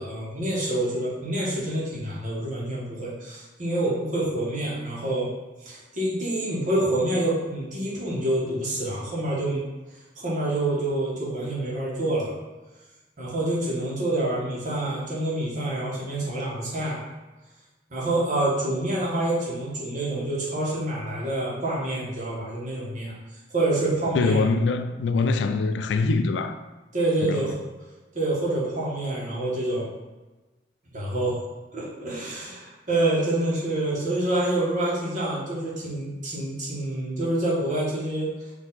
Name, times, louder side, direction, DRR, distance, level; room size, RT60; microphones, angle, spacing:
voice 1, 0.0-5.3 5.6-9.6 10.2-12.4 13.2-17.0 17.9-23.2 23.5-24.4 26.9-27.6 28.1-29.9 30.9-31.4 31.7-38.3, right 1 dB, 45° right, 1.3 m, -27 dB
voice 2, 24.1-26.6 27.2-27.5, left 3 dB, 85° left, 0.3 m, -23 dB
4.5 x 2.7 x 3.9 m
head